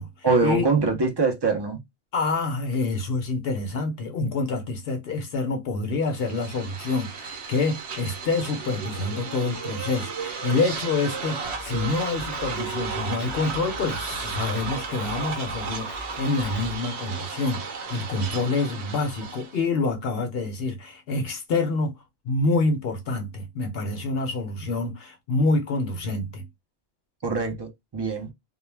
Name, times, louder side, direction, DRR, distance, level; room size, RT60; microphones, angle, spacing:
voice 1, 0.2-1.8 27.2-28.3, right 4 dB, 35° right, 0.4 m, -23 dB
voice 2, 2.1-22.0 22.2-26.4, left 3 dB, 65° left, 0.8 m, -27 dB
sound 1, 6.1-19.7, right 5 dB, 80° right, 0.9 m, -34 dB
Drum kit, 11.4-16.8, left 1 dB, 35° left, 0.8 m, -43 dB
2.2 x 2.1 x 3.1 m
omnidirectional pair, 1.1 m